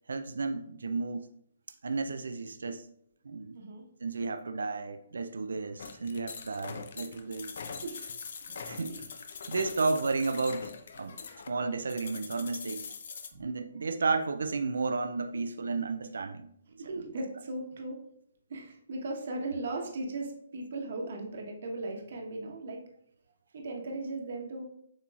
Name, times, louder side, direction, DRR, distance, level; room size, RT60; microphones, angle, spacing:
voice 1, 0.1-1.3 1.8-2.9 3.2-3.6 4.0-7.6 8.7-8.9 9.5-11.2 11.5-12.9 13.4-16.5, right 4 dB, 85° right, 0.3 m, -32 dB
sound 1, 5.8-13.3, left 5 dB, 60° left, 0.5 m, -43 dB
voice 2, 16.8-18.0 18.5-22.8 23.5-24.6, right 2 dB, 60° right, 1.1 m, -37 dB
7.4 x 2.9 x 2.4 m
hypercardioid pair, 155°, 0 cm